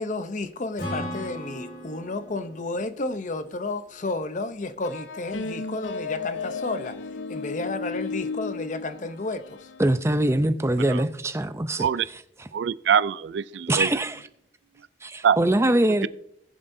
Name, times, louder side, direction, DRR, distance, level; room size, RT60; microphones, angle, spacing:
voice 1, 0.0-7.0 7.3-9.7, left 2 dB, 45° left, 0.7 m, -32 dB
Acoustic guitar / Strum, 0.8-4.4, equal, 60° left, 3.8 m, -38 dB
sound 1, 4.8-10.0, left 4 dB, 90° left, 0.6 m, -34 dB
voice 2, 9.8-11.9 12.4-12.5 13.7-14.2 15.0-16.1, right 1 dB, 15° right, 0.5 m, -23 dB
voice 3, 12.5-13.9 15.2-15.4, right 7 dB, 70° right, 0.3 m, -23 dB
20.0 x 7.4 x 2.7 m
head